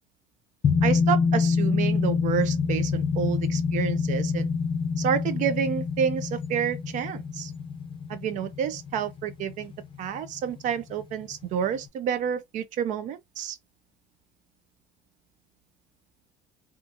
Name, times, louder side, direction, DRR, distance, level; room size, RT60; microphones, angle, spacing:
sound 1, 0.6-9.8 10.1-10.2, left 5 dB, 35° left, 0.5 m, -26 dB
voice 1, 0.8-4.5 5.0-7.5 8.1-9.7 10.0-13.6, right 8 dB, 55° right, 0.4 m, -29 dB
2.7 x 2.4 x 2.4 m
cardioid pair, 125°, 15 cm